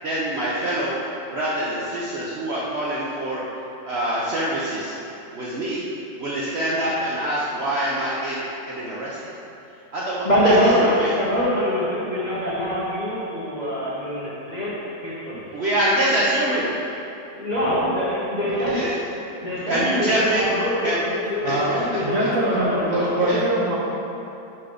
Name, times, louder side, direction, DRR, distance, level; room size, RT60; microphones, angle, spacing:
voice 1, 0.0-1.0 1.3-3.4 3.8-4.9 5.3-5.8 6.2-9.2 9.9-10.3 10.6-11.1 15.5-16.7 18.6-19.0 19.7-20.5 20.8-21.0 21.4-21.7 22.2-22.3 22.9-23.3, right 1 dB, 75° right, -6 dB, 0.6 m, -25 dB
voice 2, 10.2-14.7 15.0-15.4 17.3-18.8 19.4-23.4, equal, 30° left, -9 dB, 0.8 m, -24 dB
voice 3, 21.4-23.8, right 1 dB, 55° right, -5 dB, 1.0 m, -23 dB
6.0 x 4.4 x 5.0 m, 2.8 s
omnidirectional pair, 2.1 m